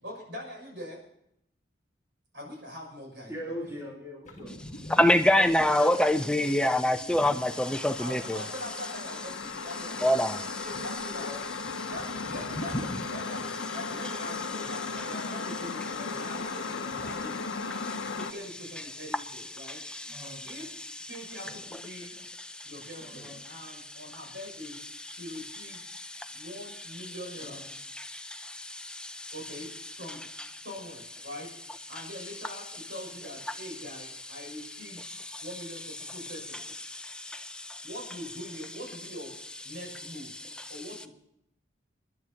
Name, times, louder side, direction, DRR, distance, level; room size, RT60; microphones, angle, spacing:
voice 1, 0.0-1.0 2.3-3.8 5.3-6.7 8.0-10.2 10.6-11.3 11.8-17.4 18.2-19.8 20.4-20.7 21.1-22.1 22.6-24.8 25.1-25.8 26.3-27.6 29.3-29.7 30.0-30.2 30.5-31.5 31.9-35.1 35.4-36.6 37.8-39.3 39.6-40.4 40.7-41.1, left 1 dB, 70° right, 6.6 m, -43 dB
voice 2, 3.3-4.5 11.2-11.5 20.1-20.4 23.0-23.4 27.5-27.6, equal, 15° right, 3.8 m, -40 dB
sound 1, 4.2-8.1 10.7-10.9 11.2-14.1 16.9-17.1, equal, 40° left, 1.9 m, -42 dB
voice 3, 4.9-8.4 10.0-10.6 17.8-18.2 19.6-20.6 22.6-22.7 25.9-26.4 27.9-29.3 35.1-35.4 36.8-37.9, left 1 dB, 5° left, 0.5 m, -27 dB
sound 2, 7.1-18.3, left 4 dB, 90° left, 0.8 m, -36 dB
29.5 x 10.5 x 2.9 m
head